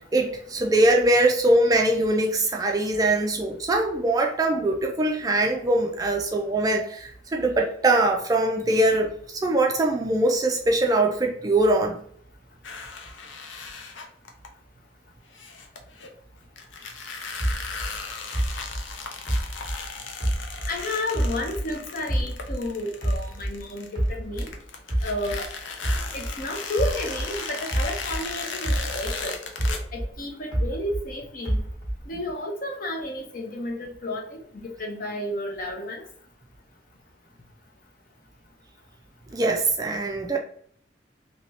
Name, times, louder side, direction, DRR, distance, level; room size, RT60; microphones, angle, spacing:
voice 1, 0.1-12.0 39.3-40.4, right 2 dB, 20° right, 2 dB, 0.3 m, -22 dB
sound 1, 12.6-14.5 15.3-16.1 16.6-24.1 24.4-29.8, left 5 dB, 85° left, 0.6 m, -36 dB
sound 2, 17.4-20.8 21.1-23.6 24.0-28.3 28.6-31.1 31.5-32.2, right 1 dB, 25° left, 1.1 m, -28 dB
voice 2, 20.7-24.5 25.0-25.5 26.1-29.4 29.9-31.6 32.1-36.1, left 1 dB, 45° left, 1 dB, 0.7 m, -32 dB
3.3 x 2.8 x 2.8 m, 0.62 s
head